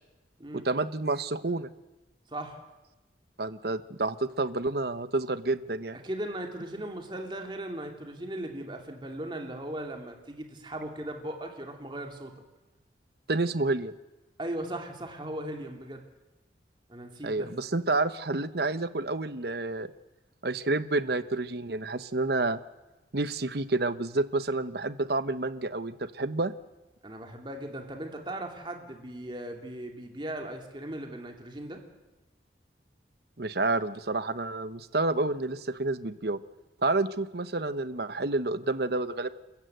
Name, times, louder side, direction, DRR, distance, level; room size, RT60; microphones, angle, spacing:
voice 1, 0.6-1.7 3.4-6.0 13.3-13.9 17.2-19.9 20.4-22.6 23.1-26.5 33.4-36.4 36.8-39.3, right 2 dB, 60° right, 12 dB, 1.0 m, -29 dB
voice 2, 2.3-2.6 6.0-12.3 14.4-16.0 16.9-17.5 27.0-31.8, right 1 dB, 25° right, 3 dB, 2.9 m, -38 dB
28.5 x 14.5 x 8.0 m, 1.1 s
head